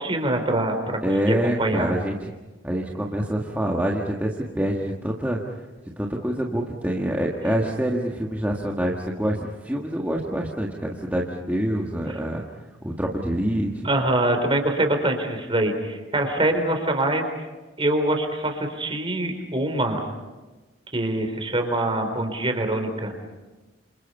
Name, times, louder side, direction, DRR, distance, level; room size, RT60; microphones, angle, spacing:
voice 1, 0.0-1.0 1.2-1.9 13.8-17.3 17.8-20.0 20.9-23.1, right 1 dB, 30° right, 5 dB, 3.9 m, -24 dB
voice 2, 1.0-2.3 2.6-5.4 6.0-12.4 12.8-13.9, right 1 dB, 10° right, -2 dB, 1.8 m, -26 dB
28.0 x 27.5 x 5.5 m, 1.2 s
head